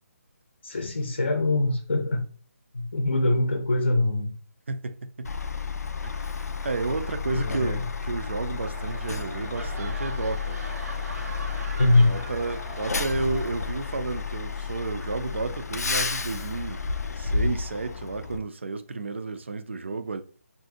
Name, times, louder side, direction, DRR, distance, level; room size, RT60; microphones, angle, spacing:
voice 1, 0.6-2.2 2.7-4.3 7.3-7.8 11.8-12.2, left 2 dB, 45° left, 0.6 m, -23 dB
voice 2, 4.7-5.3 6.0-10.6 12.0-16.9 17.2-20.2, right 3 dB, 50° right, 0.4 m, -32 dB
Truck, 5.2-18.4, left 4 dB, 90° left, 0.4 m, -31 dB
sound 1, 8.3-14.2 14.5-14.8, right 2 dB, 90° right, 1.2 m, -42 dB
2.6 x 2.5 x 3.6 m
hypercardioid pair, 175°, 8 cm